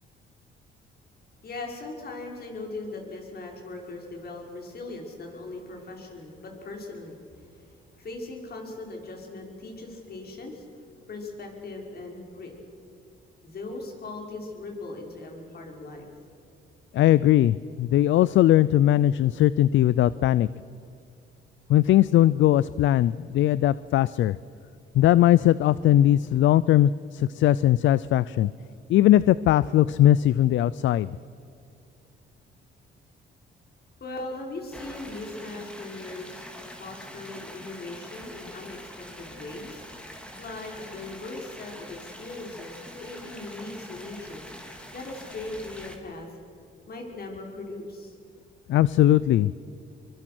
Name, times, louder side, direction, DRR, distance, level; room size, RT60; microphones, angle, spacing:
voice 1, 1.4-10.6 11.1-12.5 13.4-16.1 34.0-39.9 40.4-44.5 44.9-46.4 46.9-48.2, left 2 dB, 50° left, 1 dB, 5.9 m, -39 dB
voice 2, 16.9-20.5 21.7-24.4 24.9-28.5 28.9-31.1 48.7-49.5, left 13 dB, 70° left, 18 dB, 0.5 m, -20 dB
sound 1, 34.7-46.0, equal, 5° left, 3.6 m, -44 dB
24.5 x 24.0 x 6.2 m, 2.6 s
cardioid pair, 90°, 20 cm